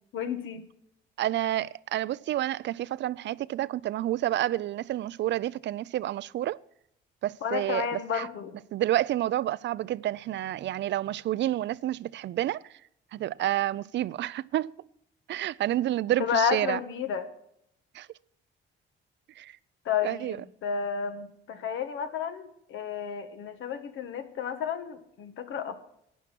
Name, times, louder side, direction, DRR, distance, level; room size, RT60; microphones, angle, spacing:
voice 1, 0.1-0.7 7.4-8.6 16.2-17.3 19.8-25.9, left 7 dB, 75° left, 1.5 m, -31 dB
voice 2, 1.2-6.6 7.2-8.3 8.7-12.6 13.1-14.8 15.3-16.8 17.9-18.1 19.4-19.6 20.0-20.4, right 13 dB, 65° right, 0.4 m, -29 dB
12.0 x 9.2 x 6.0 m
cardioid pair, 90°, 20 cm